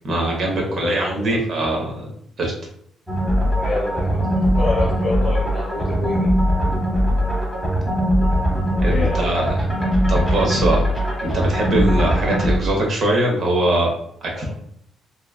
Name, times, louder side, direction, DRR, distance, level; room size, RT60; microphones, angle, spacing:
voice 1, 0.0-2.1 2.4-2.5 8.8-9.5 10.1-10.8 11.2-13.9 14.4-14.5, right 1 dB, 55° right, 0 dB, 0.9 m, -21 dB
voice 2, 0.7-1.4 3.6-6.3 8.9-9.5 14.3-14.5, left 2 dB, 65° left, -5 dB, 0.7 m, -28 dB
sound 1, 3.1-12.6, equal, 5° right, 0.9 m, -20 dB
2.9 x 2.2 x 2.2 m, 0.68 s
cardioid pair, 90°, 0 cm